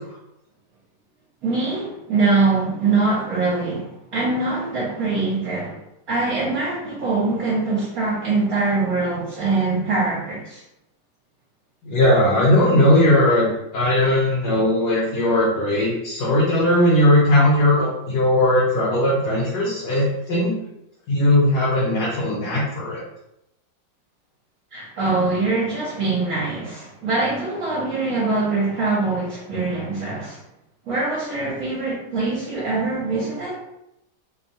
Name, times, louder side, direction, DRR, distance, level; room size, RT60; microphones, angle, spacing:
voice 1, 1.4-5.8 6.1-10.6 24.7-30.4 30.8-33.6, right 3 dB, 65° right, -8 dB, 1.2 m, -23 dB
voice 2, 11.9-20.5 21.1-23.0, left 1 dB, 70° left, -7 dB, 1.2 m, -18 dB
3.0 x 2.2 x 2.7 m, 0.85 s
omnidirectional pair, 1.8 m